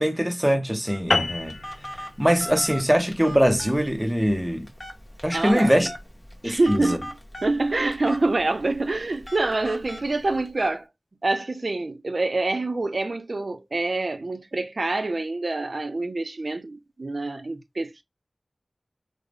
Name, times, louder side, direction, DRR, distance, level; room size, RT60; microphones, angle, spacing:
voice 1, 0.0-1.6 2.2-4.7 5.2-5.9 6.4-7.0, equal, 10° right, 0.7 m, -22 dB
Telephone, 0.9-10.7, equal, 30° left, 1.0 m, -40 dB
sound 1, 1.1-5.8, left 2 dB, 60° left, 0.6 m, -31 dB
voice 2, 5.3-5.9 6.4-7.1 7.4-10.9 11.2-18.0, right 2 dB, 65° right, 0.5 m, -26 dB
3.6 x 2.0 x 3.3 m
wide cardioid pair, 60°, 0 cm